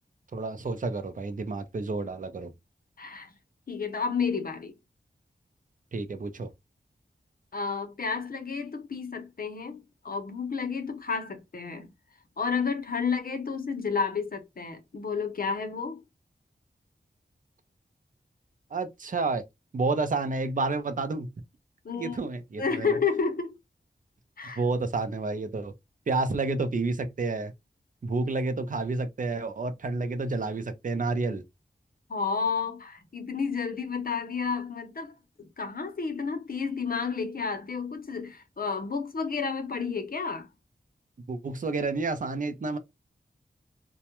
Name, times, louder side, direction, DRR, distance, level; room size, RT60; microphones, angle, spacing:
voice 1, 0.3-2.5 5.9-6.5 18.7-19.4 19.7-21.3 22.0-23.0 24.6-25.7 26.1-27.5 28.0-31.4 41.3-42.8, right 3 dB, 45° right, 0.5 m, -30 dB
voice 2, 3.0-3.3 3.7-4.8 7.5-11.9 12.4-16.0 21.8-22.2 22.6-23.6 24.4-24.6 32.1-40.5, left 5 dB, 55° left, 0.6 m, -31 dB
2.1 x 2.1 x 2.9 m
wide cardioid pair, 55°, 18 cm